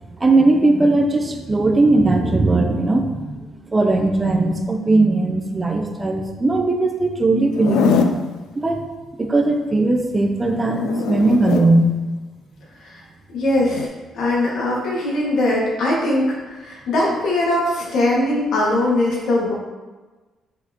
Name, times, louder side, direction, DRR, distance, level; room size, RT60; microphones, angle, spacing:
voice 1, 0.2-8.2 8.6-8.8 9.2-11.9, right 2 dB, 20° right, 3 dB, 0.7 m, -18 dB
Zipper (clothing), 7.5-8.2 10.4-11.7 13.6-13.9, left 6 dB, 90° left, 0.4 m, -22 dB
voice 2, 13.3-13.9 14.1-19.5, left 1 dB, 70° left, -4 dB, 2.0 m, -20 dB
5.8 x 5.8 x 3.0 m, 1.2 s
cardioid pair, 115°, 0 cm